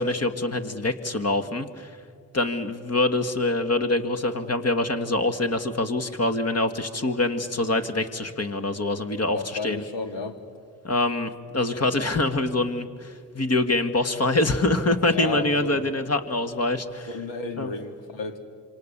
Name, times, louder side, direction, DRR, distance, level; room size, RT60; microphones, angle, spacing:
voice 1, 0.0-1.9 2.3-9.8 10.8-17.1 17.6-17.7, left 2 dB, 30° left, 9 dB, 2.1 m, -25 dB
voice 2, 9.3-10.4 15.1-15.8 17.1-18.4, left 4 dB, 60° left, 7 dB, 2.8 m, -33 dB
27.0 x 25.0 x 7.0 m, 2.1 s
hypercardioid pair, 50°, 49 cm